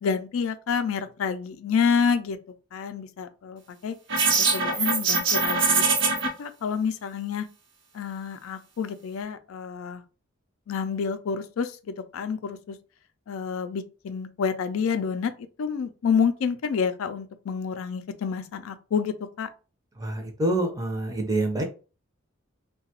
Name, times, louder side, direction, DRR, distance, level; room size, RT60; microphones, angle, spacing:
voice 1, 0.0-2.4 2.7-4.0 4.3-5.8 6.4-7.5 7.9-10.0 10.7-12.8 13.3-15.3 15.6-19.5, left 6 dB, 90° left, 0.4 m, -28 dB
sound 1, 4.1-6.3, right 4 dB, 65° right, 0.7 m, -22 dB
voice 2, 20.0-21.6, right 1 dB, 15° right, 0.5 m, -26 dB
2.8 x 2.2 x 2.9 m
head